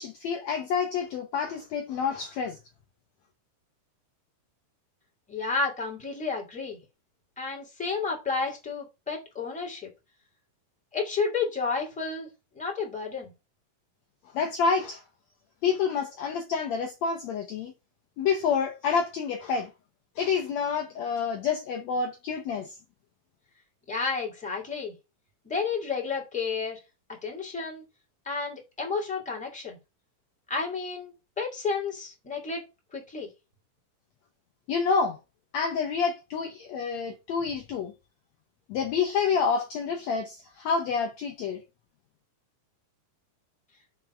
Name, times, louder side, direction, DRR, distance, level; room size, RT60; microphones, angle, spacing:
voice 1, 0.0-2.6 14.3-15.0 15.6-17.7 18.2-19.7 20.2-22.7 34.7-35.2 35.5-37.9 38.7-41.6, left 5 dB, 70° left, 1.8 m, -28 dB
voice 2, 5.3-6.8 7.4-9.9 10.9-12.3 12.5-13.3 23.9-24.9 25.4-26.8 27.1-27.8 28.2-29.8 30.5-32.6 32.9-33.3, left 4 dB, 5° left, 2.1 m, -31 dB
6.2 x 4.6 x 6.2 m
omnidirectional pair, 3.9 m